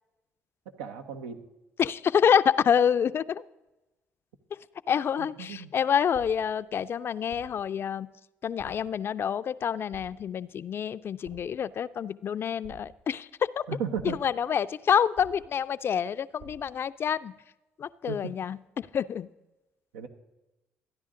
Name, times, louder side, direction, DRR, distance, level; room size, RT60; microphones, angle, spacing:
voice 1, 0.8-1.4 5.2-5.7 13.7-14.2 18.1-18.2 19.9-20.1, right 7 dB, 90° right, 7 dB, 0.9 m, -35 dB
voice 2, 1.8-3.4 4.9-8.1 8.4-13.3 13.6-13.7 14.0-17.3 17.8-19.3, left 8 dB, 50° left, 15 dB, 0.4 m, -27 dB
sound 1, 6.1-6.6 7.3-7.7 8.6-9.0 9.9-10.4 11.2-11.7 12.6-13.2 14.0-14.4 15.2-15.7 16.4-16.8, right 4 dB, 70° right, 4.1 m, -51 dB
13.5 x 10.0 x 3.7 m, 1.0 s
supercardioid pair, 65°, 5 cm